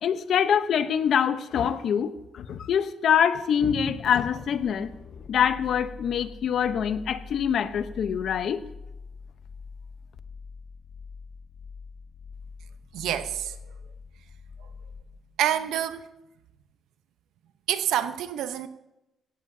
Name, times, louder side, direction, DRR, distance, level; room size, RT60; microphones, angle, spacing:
voice 1, 0.0-4.9 5.3-8.6, left 8 dB, 65° left, 0.9 m, -25 dB
sound 1, 4.0-15.5, left 5 dB, 45° left, 1.3 m, -44 dB
voice 2, 12.9-13.6 15.4-16.1 17.7-18.7, right 11 dB, 85° right, 0.8 m, -27 dB
17.0 x 16.5 x 2.8 m
cardioid pair, 90°, 0 cm